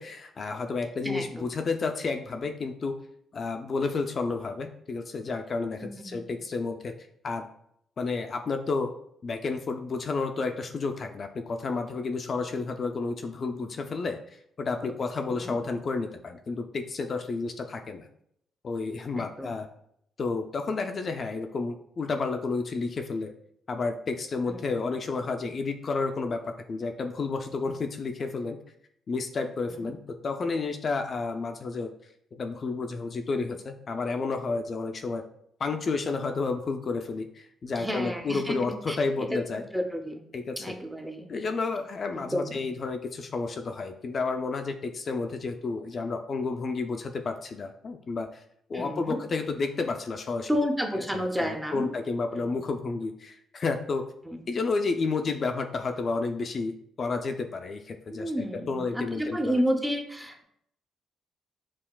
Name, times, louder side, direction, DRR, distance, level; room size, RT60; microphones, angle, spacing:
voice 1, 0.0-3.0 3.3-7.5 8.0-8.9 9.2-18.1 18.6-19.7 20.2-23.3 23.7-28.6 29.1-30.0 30.2-31.9 32.3-35.2 35.6-39.6 40.3-40.8 41.3-48.4 48.7-50.5 50.9-54.0 54.5-58.3 58.7-59.6, left 4 dB, 45° left, 6 dB, 0.3 m, -31 dB
voice 2, 1.0-1.5 5.9-6.4 14.8-14.9 15.4-15.5 19.1-19.5 24.5-24.6 29.7-29.9 37.8-40.2 40.6-41.3 42.1-42.6 48.7-49.2 50.5-51.9 52.4-52.5 54.3-54.4 58.1-60.4, equal, 5° right, 3 dB, 0.6 m, -31 dB
5.6 x 2.3 x 2.2 m, 0.72 s
cardioid pair, 90°, 0 cm